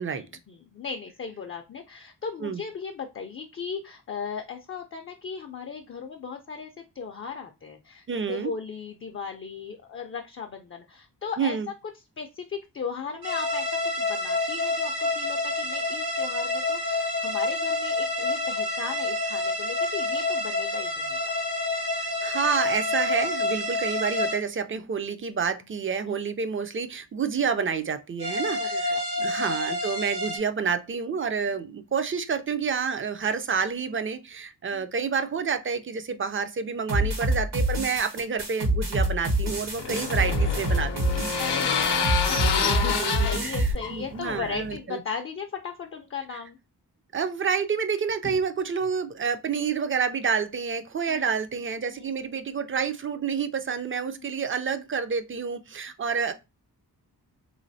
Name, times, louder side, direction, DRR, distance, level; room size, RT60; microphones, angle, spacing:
voice 1, 0.1-6.7 7.0-11.6 12.2-13.7 13.9-21.3 23.7-23.9 26.1-26.2 28.6-29.4 34.7-34.8 37.0-37.1 41.4-46.6 51.1-51.2 51.9-52.0, left 6 dB, 35° left, 0.4 m, -37 dB
voice 2, 8.1-8.5 11.4-11.7 22.2-41.3 42.4-45.0 47.1-56.3, right 6 dB, 35° right, 0.4 m, -29 dB
sound 1, 13.2-24.4 28.2-30.4, left 2 dB, 75° right, 1.8 m, -28 dB
sound 2, 36.9-43.7, right 1 dB, 90° right, 1.6 m, -26 dB
sound 3, 39.2-44.8, left 6 dB, 85° left, 0.6 m, -28 dB
3.3 x 3.1 x 2.6 m
wide cardioid pair, 105°, 40 cm